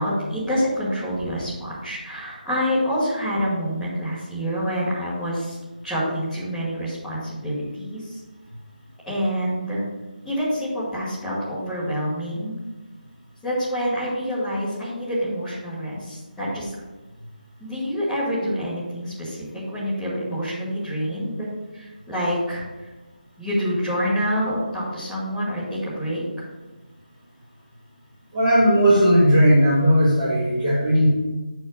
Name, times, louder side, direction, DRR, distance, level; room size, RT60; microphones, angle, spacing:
voice 1, 0.0-5.6 5.8-8.2 9.1-9.8 10.2-12.6 13.4-16.7 17.6-21.5 21.7-22.6 23.4-26.2, equal, ahead, -16 dB, 1.5 m, -27 dB
voice 2, 28.3-31.1, equal, 15° right, -13 dB, 1.8 m, -17 dB
6.8 x 4.6 x 6.4 m, 1.1 s
figure-of-eight pair, 180°, 5 cm